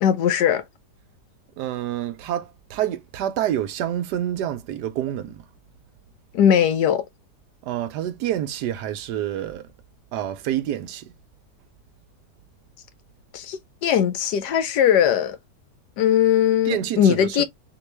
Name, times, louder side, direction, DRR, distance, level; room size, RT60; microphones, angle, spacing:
voice 1, 0.0-0.6 6.3-7.0 13.3-15.4 16.0-17.4, left 9 dB, 75° left, 1.2 m, -19 dB
voice 2, 1.6-5.4 7.6-9.6 10.1-11.1 16.7-17.4, right 11 dB, 75° right, 1.1 m, -27 dB
3.7 x 2.9 x 3.1 m
omnidirectional pair, 1.9 m